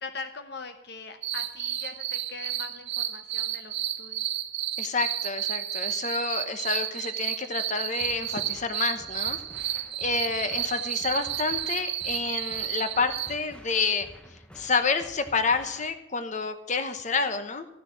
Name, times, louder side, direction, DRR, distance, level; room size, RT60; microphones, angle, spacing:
voice 1, 0.0-4.3 10.5-10.7, left 4 dB, 65° left, 8 dB, 0.8 m, -41 dB
sound 1, 1.2-13.3, right 12 dB, 75° right, 1.2 m, -32 dB
voice 2, 4.8-9.7 10.0-14.1 14.6-17.6, left 4 dB, 45° left, 9 dB, 1.0 m, -29 dB
sound 2, 8.0-16.0, equal, 5° left, 1.0 m, -51 dB
13.5 x 6.7 x 7.4 m, 0.87 s
head